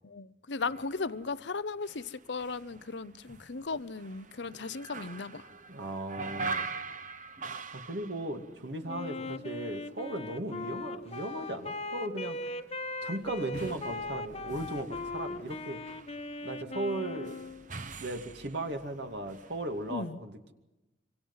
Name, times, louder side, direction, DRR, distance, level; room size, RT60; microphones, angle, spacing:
voice 1, 0.0-5.5 19.9-20.2, left 4 dB, 70° left, 0.8 m, -36 dB
sound 1, 0.6-9.5 9.8-20.0, right 4 dB, 40° right, 1.1 m, -44 dB
voice 2, 5.7-6.7 7.7-12.4 13.0-15.8 16.4-17.4 18.0-20.5, right 1 dB, 60° right, 2.5 m, -37 dB
Wind instrument woodwind instrument, 8.9-17.7, left 2 dB, 30° left, 1.3 m, -39 dB
26.5 x 25.0 x 5.7 m
head